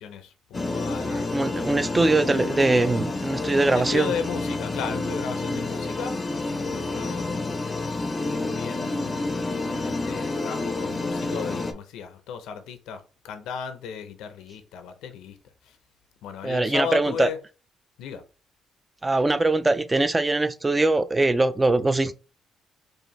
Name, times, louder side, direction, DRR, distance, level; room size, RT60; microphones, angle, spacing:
voice 1, 0.0-1.5 3.7-6.1 6.5-7.6 8.3-9.3 9.8-15.4 15.6-15.8 16.2-17.4 18.0-18.2, left 6 dB, 90° left, 0.6 m, -35 dB
sound 1, 0.5-11.7, left 2 dB, 30° left, 0.6 m, -29 dB
voice 2, 1.0-4.1 16.4-17.3 19.0-22.1, right 2 dB, 20° right, 0.4 m, -22 dB
4.6 x 2.5 x 3.1 m
cardioid pair, 90°, 0 cm